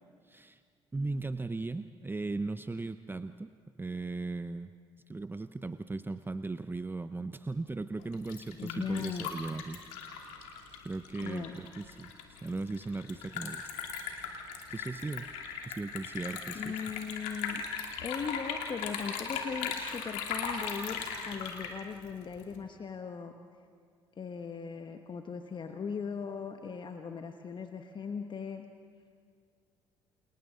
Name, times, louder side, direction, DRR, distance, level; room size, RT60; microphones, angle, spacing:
voice 1, 0.3-0.6 0.9-3.5 3.8-4.7 5.1-9.8 10.8-12.1 12.4-13.7 14.7-15.3 15.6-16.8, right 3 dB, 15° right, 11 dB, 0.8 m, -37 dB
Liquid, 8.0-22.6, left 6 dB, 70° left, 2.8 m, -39 dB
voice 2, 8.6-9.3 11.2-11.6 16.5-17.6 18.0-23.3 24.2-28.7, left 6 dB, 35° left, 5 dB, 1.4 m, -39 dB
29.5 x 28.0 x 3.9 m, 2.1 s
hypercardioid pair, 55°, 13 cm